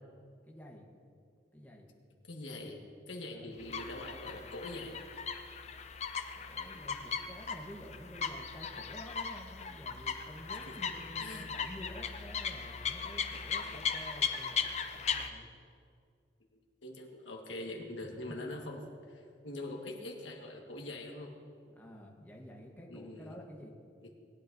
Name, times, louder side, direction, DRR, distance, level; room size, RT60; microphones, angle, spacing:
voice 1, 0.4-0.8 1.5-1.9 3.3-3.5 6.4-15.5 21.7-23.7, equal, 10° left, -1 dB, 1.1 m, -50 dB
voice 2, 2.3-2.8 3.1-5.0 10.5-10.8 11.2-11.5 13.7-13.8 16.8-18.8 19.1-21.3 22.9-23.3 24.0-24.1, left 2 dB, 90° left, 0 dB, 1.6 m, -43 dB
sound 1, 3.6-15.3, left 6 dB, 35° left, 0.5 m, -38 dB
19.5 x 10.0 x 2.7 m, 2.3 s
head